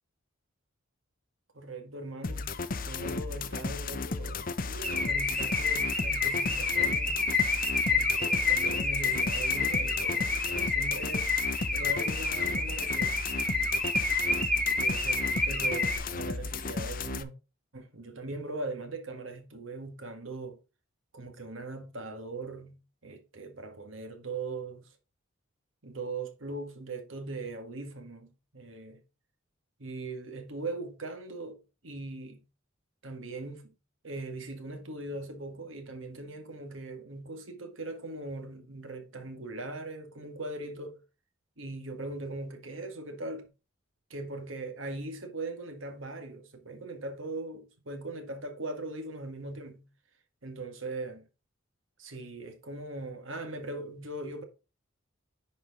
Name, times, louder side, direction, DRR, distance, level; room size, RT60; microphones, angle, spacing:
voice 1, 1.5-7.3 7.9-11.3 11.7-13.2 13.7-13.9 14.7-17.3 17.7-20.6 21.1-24.9 25.8-29.0 29.8-32.4 33.0-33.7 34.0-41.0 41.6-43.5 44.1-49.9 50.4-51.2 52.0-54.4, right 2 dB, 75° right, 1.8 m, -40 dB
sound 1, 2.2-17.2, left 3 dB, 45° left, 0.7 m, -35 dB
Car / Alarm, 4.8-16.0, left 3 dB, 5° left, 1.2 m, -29 dB
10.0 x 4.5 x 3.7 m
head